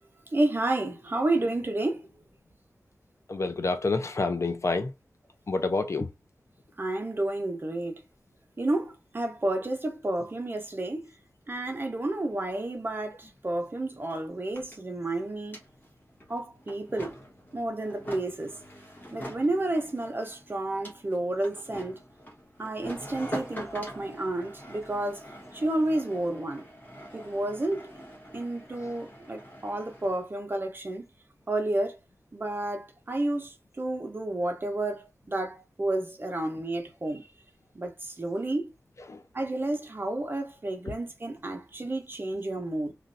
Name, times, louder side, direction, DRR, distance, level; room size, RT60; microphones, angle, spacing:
voice 1, 0.3-2.1 6.8-8.0 8.6-11.0 11.5-15.6 16.3-17.1 17.5-18.5 19.1-22.0 22.6-25.2 25.5-26.6 27.1-28.0 28.3-31.0 31.5-32.0 32.3-37.3 37.7-38.7 39.3-42.9, right 2 dB, 40° right, 0.8 m, -31 dB
voice 2, 3.3-4.9 5.5-6.1 39.1-39.2, left 3 dB, 55° left, 0.5 m, -28 dB
sound 1, 13.4-13.5 13.6-30.3, equal, 35° left, 1.2 m, -45 dB
3.1 x 2.6 x 2.6 m
wide cardioid pair, 90°, 6 cm